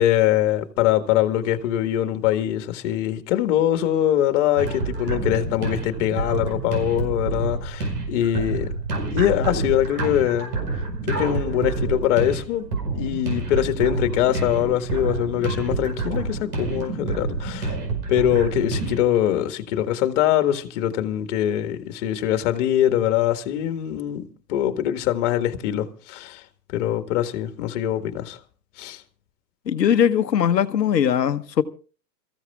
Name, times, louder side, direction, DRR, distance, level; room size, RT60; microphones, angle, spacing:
voice 1, 0.0-8.7 9.1-10.5 11.0-12.7 12.9-17.8 18.1-26.4 26.7-28.4 28.8-29.0, left 11 dB, 45° left, 1.8 m, -23 dB
sound 1, 4.6-19.0, right 3 dB, 70° right, 5.3 m, -28 dB
voice 2, 29.7-31.6, left 9 dB, 75° left, 1.2 m, -20 dB
28.0 x 15.0 x 2.3 m
hypercardioid pair, 115°, 50 cm